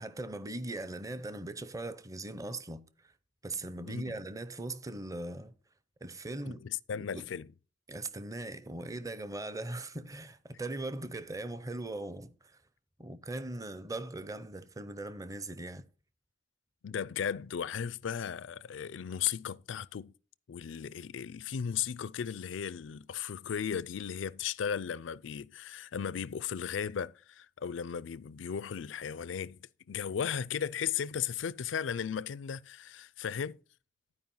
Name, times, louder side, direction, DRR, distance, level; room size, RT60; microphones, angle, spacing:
voice 1, 0.0-3.1 3.4-5.5 6.0-6.6 7.0-7.3 7.9-12.6 13.0-15.8, right 2 dB, 20° right, 0.7 m, -40 dB
voice 2, 3.9-4.2 6.4-7.5 16.8-20.1 20.5-29.6 29.9-33.6, left 8 dB, 85° left, 0.4 m, -36 dB
11.5 x 4.9 x 5.5 m
head